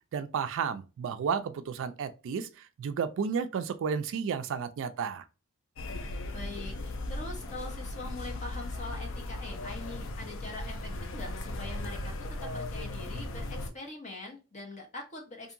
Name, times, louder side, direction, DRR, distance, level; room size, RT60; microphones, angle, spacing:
voice 1, 0.1-5.2, right 6 dB, 60° right, 0.3 m, -32 dB
sound 1, 5.8-13.7, left 2 dB, 60° left, 0.4 m, -37 dB
voice 2, 6.3-12.1 12.4-15.5, left 2 dB, 30° left, 0.9 m, -43 dB
2.7 x 2.5 x 2.5 m
head